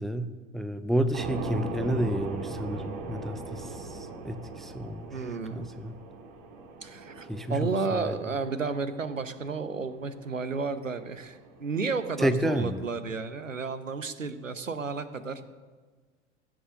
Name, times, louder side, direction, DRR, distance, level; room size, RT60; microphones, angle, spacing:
voice 1, 0.0-5.2 5.5-6.0 7.3-8.2 12.2-12.8, right 1 dB, ahead, 12 dB, 0.4 m, -30 dB
sound 1, 1.1-13.1, right 3 dB, 55° right, 2.0 m, -41 dB
voice 2, 5.1-5.7 6.8-15.4, right 4 dB, 90° right, 12 dB, 0.8 m, -32 dB
15.5 x 6.4 x 6.5 m, 1.4 s
figure-of-eight pair, 80°, 37 cm